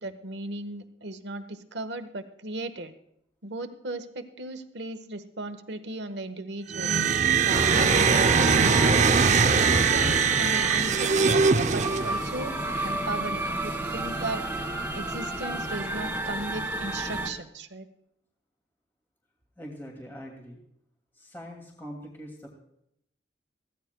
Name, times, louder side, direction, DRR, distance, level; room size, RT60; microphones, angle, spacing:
voice 1, 0.0-2.9 3.4-7.0 7.4-9.2 9.6-11.4 11.7-12.5 12.8-14.4 14.9-17.9, right 2 dB, 70° right, 9 dB, 1.2 m, -36 dB
sound 1, 6.7-12.4, right 5 dB, 40° right, 0.6 m, -22 dB
sound 2, 7.5-17.3, right 1 dB, 10° right, 2.4 m, -31 dB
voice 2, 19.6-20.6 21.1-22.5, equal, 15° left, -1 dB, 2.4 m, -42 dB
22.0 x 16.0 x 2.3 m, 0.76 s
head